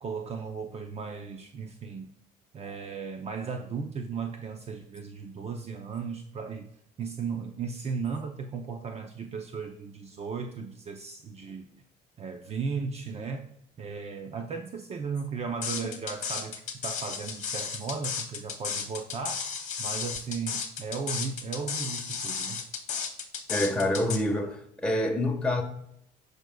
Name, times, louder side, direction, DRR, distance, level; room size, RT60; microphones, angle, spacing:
voice 1, 0.0-2.1 2.5-6.7 7.0-11.8 12.2-13.5 13.8-19.4 19.8-22.6, right 5 dB, 40° right, 5 dB, 0.7 m, -36 dB
sound 1, 15.6-24.2, left 6 dB, 45° left, 1.2 m, -33 dB
voice 2, 23.5-25.6, left 1 dB, 5° left, 0 dB, 1.3 m, -27 dB
15.5 x 5.2 x 2.3 m, 0.74 s
cardioid pair, 110°, 17 cm